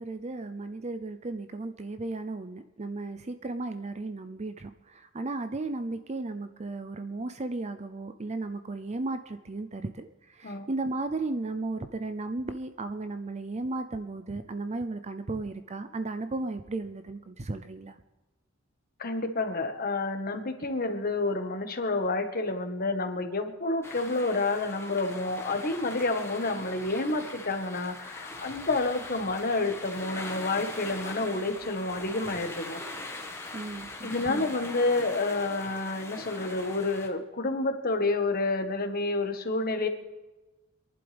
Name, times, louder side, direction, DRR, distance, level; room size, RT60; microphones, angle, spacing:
voice 1, 0.0-18.0 33.5-34.5, right 2 dB, 35° right, 10 dB, 0.6 m, -35 dB
voice 2, 19.0-32.8 34.0-39.9, left 2 dB, 45° left, 6 dB, 1.5 m, -29 dB
sound 1, 23.8-37.1, left 2 dB, 15° left, 1.5 m, -41 dB
27.0 x 11.5 x 3.5 m, 1.1 s
head